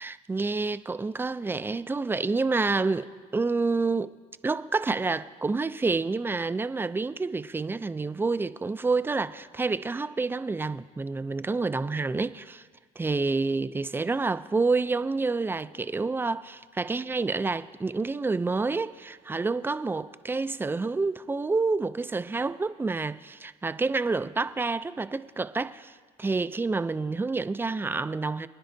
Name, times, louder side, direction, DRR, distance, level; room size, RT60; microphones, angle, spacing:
voice 1, 0.0-4.2 4.4-12.6 13.0-28.5, right 3 dB, 15° right, 0.4 m, -28 dB
26.0 x 10.0 x 2.7 m
cardioid pair, 110°, 17 cm